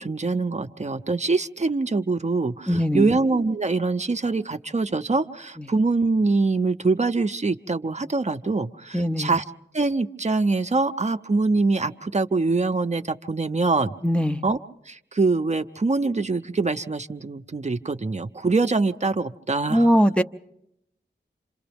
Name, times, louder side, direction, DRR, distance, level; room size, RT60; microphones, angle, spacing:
voice 1, 0.0-9.4 9.7-13.9 14.4-14.6 14.9-19.8, right 3 dB, 40° right, 7 dB, 0.7 m, -24 dB
voice 2, 2.7-3.1 5.6-5.7 8.9-9.4 14.0-14.4 19.7-20.2, equal, 5° left, 5 dB, 0.7 m, -21 dB
28.5 x 26.5 x 3.5 m, 0.79 s
cardioid pair, 45°, 18 cm